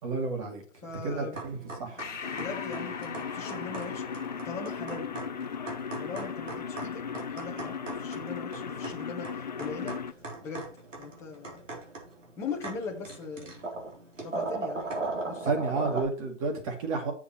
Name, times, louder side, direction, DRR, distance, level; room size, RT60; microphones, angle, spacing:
voice 1, 0.0-0.6 1.0-2.0 15.4-17.1, right 4 dB, 30° right, 3 dB, 2.4 m, -31 dB
voice 2, 0.8-1.4 2.3-4.1 4.4-5.1 6.0-10.0 10.4-10.7 11.0-11.6 12.4-13.6 14.2-14.8 15.2-15.5, left 5 dB, 10° left, -2 dB, 1.1 m, -40 dB
sound 1, 1.3-16.0, right 3 dB, 80° right, 3.6 m, -39 dB
Breathing, 2.0-6.9, left 6 dB, 70° left, 1.4 m, -43 dB
sound 2, 2.2-10.1, left 6 dB, 40° left, 0.4 m, -37 dB
7.3 x 7.1 x 4.4 m, 0.40 s
hypercardioid pair, 150°, 37 cm